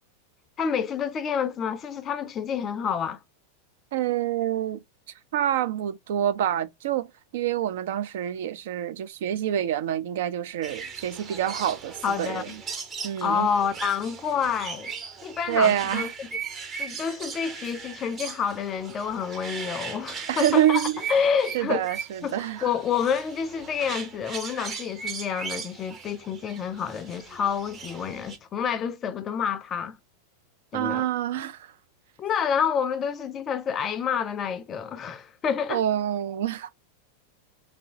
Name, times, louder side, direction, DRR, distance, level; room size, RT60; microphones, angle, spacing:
voice 1, 0.6-3.2 12.0-12.6 13.2-14.9 15.2-16.3 16.8-20.8 21.1-21.8 22.2-30.0 30.7-31.1 32.2-35.8, left 7 dB, 25° left, 0.4 m, -28 dB
voice 2, 3.9-4.8 5.3-7.1 7.3-12.5 13.0-13.5 15.5-16.1 20.3-21.0 21.5-22.7 30.7-31.6 35.7-36.7, right 10 dB, 55° right, 0.3 m, -26 dB
sound 1, 10.6-28.4, right 6 dB, 25° right, 0.7 m, -38 dB
3.0 x 2.7 x 2.7 m
figure-of-eight pair, 90°, 0 cm